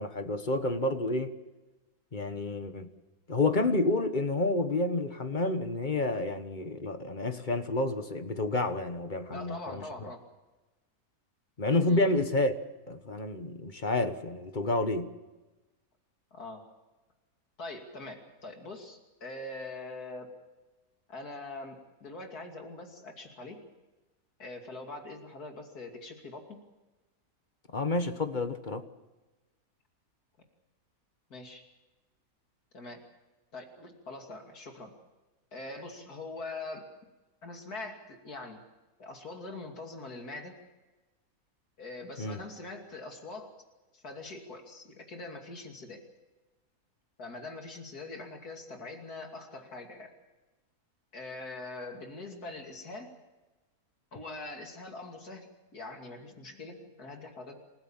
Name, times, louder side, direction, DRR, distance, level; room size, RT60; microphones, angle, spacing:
voice 1, 0.0-1.3 2.1-2.9 3.3-10.1 11.6-12.5 12.9-15.1 27.7-28.8 42.2-42.4, left 2 dB, 30° left, 8 dB, 1.4 m, -29 dB
voice 2, 9.3-10.2 11.8-12.0 16.3-16.6 17.6-20.3 21.1-23.6 24.4-26.6 31.3-31.6 32.7-33.0 33.5-34.9 35.5-36.9 37.4-38.6 39.0-40.6 41.8-43.5 43.9-46.0 47.2-50.1 51.1-53.1 54.1-57.6, left 2 dB, 80° left, 3 dB, 3.2 m, -43 dB
28.0 x 15.5 x 7.3 m, 1.1 s
omnidirectional pair, 1.6 m